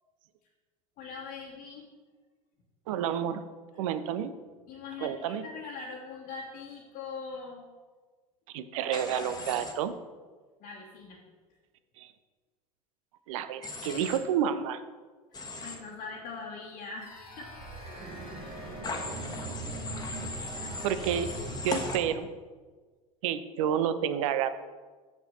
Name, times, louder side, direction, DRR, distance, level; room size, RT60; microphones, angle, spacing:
voice 1, 1.0-1.9 4.7-7.7 10.6-11.2 15.3-17.5 20.4-21.2, left 4 dB, 45° left, -2 dB, 1.3 m, -42 dB
voice 2, 2.9-3.4 3.8-4.3 5.0-5.4 8.5-9.9 12.0-12.1 13.3-14.8 20.8-21.3 21.6-22.3 23.2-24.6, right 9 dB, 60° right, 11 dB, 0.6 m, -30 dB
Human voice / Train, 8.9-9.7 13.6-14.2 15.3-15.8 18.8-22.0, left 3 dB, 20° left, 1.3 m, -38 dB
sound 1, 17.0-21.7, left 1 dB, 80° left, 1.5 m, -49 dB
sound 2, 17.2-22.1, right 2 dB, 30° right, 1.2 m, -41 dB
6.6 x 5.8 x 5.4 m, 1.4 s
figure-of-eight pair, 75°, 19 cm